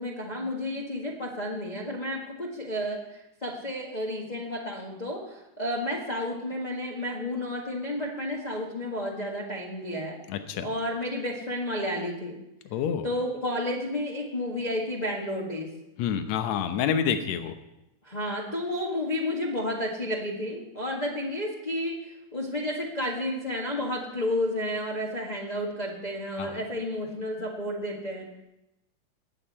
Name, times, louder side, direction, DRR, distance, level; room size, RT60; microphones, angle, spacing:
voice 1, 0.0-10.2 10.6-12.4 13.0-15.7 18.0-28.2, left 1 dB, 25° left, -3 dB, 1.0 m, -31 dB
voice 2, 10.3-10.7 12.7-13.1 16.0-17.5 26.4-26.6, left 8 dB, 70° left, 8 dB, 2.1 m, -28 dB
20.0 x 8.6 x 4.3 m, 0.92 s
omnidirectional pair, 3.7 m